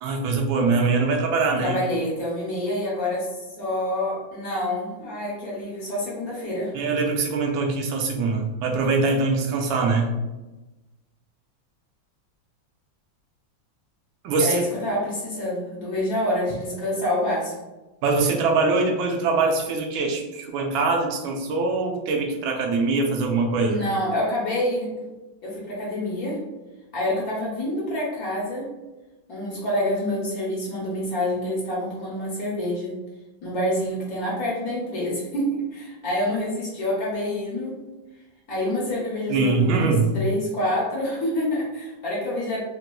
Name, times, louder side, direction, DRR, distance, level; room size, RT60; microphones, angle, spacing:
voice 1, 0.0-1.8 6.7-10.1 14.2-14.6 18.0-23.8 39.3-40.1, right 3 dB, 85° right, 1 dB, 1.4 m, -23 dB
voice 2, 1.6-6.7 14.4-17.5 23.7-24.9 25.4-26.4 26.9-28.7 29.3-33.0 33.4-37.8 38.5-42.6, left 1 dB, 55° left, -5 dB, 1.1 m, -27 dB
4.0 x 2.3 x 2.2 m, 1.1 s
omnidirectional pair, 2.1 m